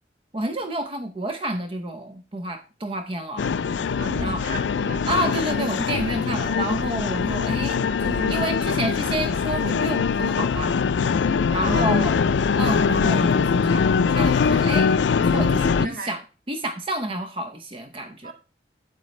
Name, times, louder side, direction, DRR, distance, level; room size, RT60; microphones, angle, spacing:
voice 1, 0.3-3.5 4.2-4.4 5.0-10.8 11.5-12.2 12.5-16.2 16.5-18.3, right 1 dB, 30° right, 0.7 m, -29 dB
sound 1, 3.4-15.9, left 5 dB, 80° left, 0.4 m, -22 dB
voice 2, 4.0-5.0 7.9-8.3 11.3-11.9 15.8-16.2 18.2-18.3, right 2 dB, 50° right, 1.7 m, -36 dB
9.1 x 8.2 x 3.1 m
head